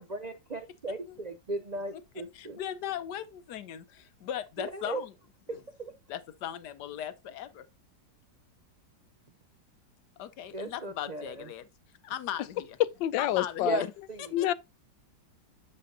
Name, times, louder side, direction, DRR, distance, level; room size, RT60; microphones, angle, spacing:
voice 1, 0.0-2.6 4.6-5.0 5.5-5.9 10.5-11.5 13.6-14.3, right 2 dB, 70° right, 0.4 m, -37 dB
voice 2, 2.3-5.1 6.1-7.6 10.2-11.7 12.0-12.8 13.2-13.9 14.2-14.5, left 10 dB, 70° left, 1.3 m, -38 dB
voice 3, 13.0-13.8 14.3-14.5, left 13 dB, 90° left, 1.3 m, -27 dB
8.5 x 6.8 x 2.7 m
omnidirectional pair, 1.9 m